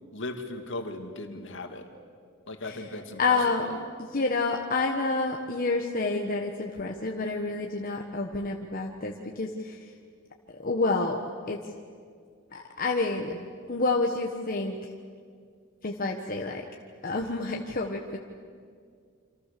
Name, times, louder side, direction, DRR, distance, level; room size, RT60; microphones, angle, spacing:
voice 1, 0.1-1.8 2.5-3.4, left 2 dB, 65° left, 5 dB, 2.4 m, -37 dB
voice 2, 2.6-3.7 4.0-9.8 10.6-11.2 11.5-11.6 12.5-14.8 15.8-16.6 17.0-18.2, left 3 dB, 45° left, 2 dB, 1.4 m, -29 dB
28.0 x 26.5 x 6.9 m, 2.1 s
head